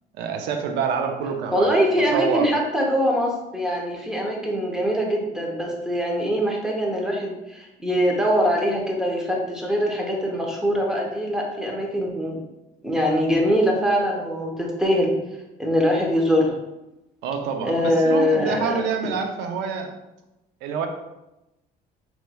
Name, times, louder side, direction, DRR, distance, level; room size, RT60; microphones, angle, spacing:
voice 1, 0.2-2.5 17.2-19.9 20.6-20.9, right 6 dB, 90° right, 5 dB, 0.5 m, -27 dB
voice 2, 1.5-12.4 12.8-15.1 15.6-16.5 17.6-18.8, equal, 5° right, -1 dB, 0.8 m, -23 dB
4.3 x 3.1 x 2.3 m, 0.94 s
cardioid pair, 110°, 17 cm